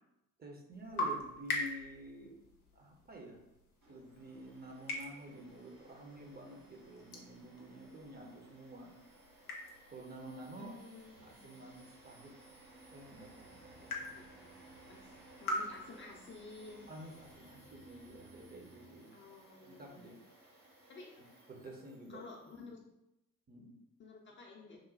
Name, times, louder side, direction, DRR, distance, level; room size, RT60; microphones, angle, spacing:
voice 1, 0.4-2.4 2.7-3.4 3.9-8.9 9.9-10.8 11.2-12.3 12.9-14.1 16.9-19.2 19.6-20.3 21.2-22.2 23.5-23.8, right 1 dB, 20° right, 0 dB, 0.7 m, -50 dB
sound 1, 0.7-18.6, left 1 dB, 85° left, 0.5 m, -45 dB
Domestic sounds home sounds, 3.8-22.7, right 1 dB, 85° right, 1.1 m, -61 dB
voice 2, 10.6-11.7 14.1-14.5 14.9-15.1 15.4-16.9 19.1-20.0 20.9-21.1 22.1-22.8 24.0-24.8, left 3 dB, 30° left, -1 dB, 0.5 m, -52 dB
sound 2, 12.1-19.0, right 3 dB, 65° right, 1.4 m, -61 dB
3.1 x 2.1 x 3.9 m, 0.89 s
figure-of-eight pair, 45°, 43 cm